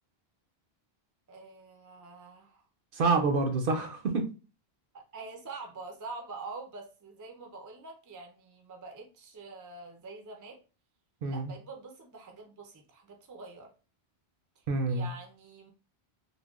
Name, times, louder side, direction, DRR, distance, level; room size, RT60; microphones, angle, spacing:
voice 1, 1.3-2.6 4.9-10.6 11.2-13.7 14.6-15.7, right 3 dB, 30° right, 2 dB, 0.4 m, -45 dB
voice 2, 2.9-4.3 11.2-11.5 14.7-15.1, right 3 dB, 65° right, 4 dB, 0.7 m, -27 dB
3.4 x 2.1 x 2.3 m, 0.33 s
omnidirectional pair, 1.1 m